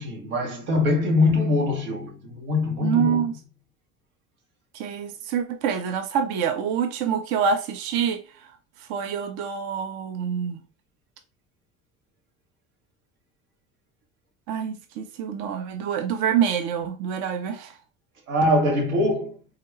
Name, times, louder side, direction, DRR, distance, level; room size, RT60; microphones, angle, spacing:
voice 1, 0.0-3.4 18.3-19.4, left 2 dB, 90° right, 1.0 m, -23 dB
voice 2, 2.8-3.3 4.7-8.2 8.9-10.6 14.5-17.7, right 7 dB, 60° right, 0.6 m, -26 dB
3.7 x 2.1 x 3.0 m
hypercardioid pair, 70°, 42 cm